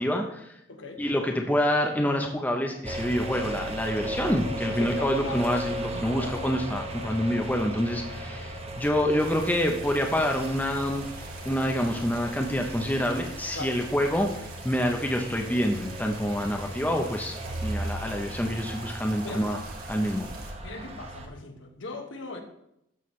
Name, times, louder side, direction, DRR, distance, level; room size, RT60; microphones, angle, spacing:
voice 1, 0.0-0.5 1.0-11.0 11.5-14.3 14.6-17.3 17.6-19.6 19.9-20.3, equal, 10° left, 2 dB, 0.7 m, -27 dB
voice 2, 0.7-1.0 4.2-4.4 4.8-5.7 5.9-6.3 13.5-13.8 16.5-17.1 17.4-17.6 19.2-19.5 20.6-22.4, left 2 dB, 65° left, 5 dB, 1.2 m, -39 dB
sound 1, 2.8-21.3, right 1 dB, 30° right, 0.9 m, -37 dB
sound 2, 9.2-20.5, right 4 dB, 45° right, 1.4 m, -47 dB
12.5 x 7.1 x 3.2 m, 0.79 s
head